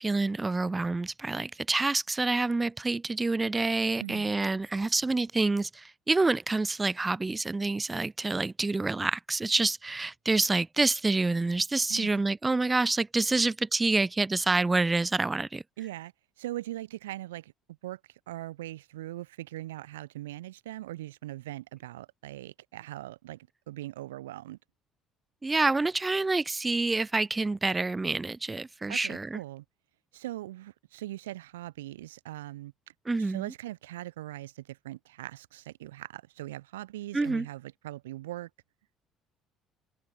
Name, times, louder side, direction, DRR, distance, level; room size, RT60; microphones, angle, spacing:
voice 1, 0.0-15.6 25.4-29.4 33.1-33.5 37.1-37.5, right 3 dB, 20° right, 0.5 m, -27 dB
voice 2, 4.0-4.3 11.9-12.1 13.4-13.5 15.8-17.5 17.8-24.6 28.9-29.6 30.1-32.7 33.2-38.5, right 15 dB, 75° right, 0.4 m, -41 dB
figure-of-eight pair, 55°, 0 cm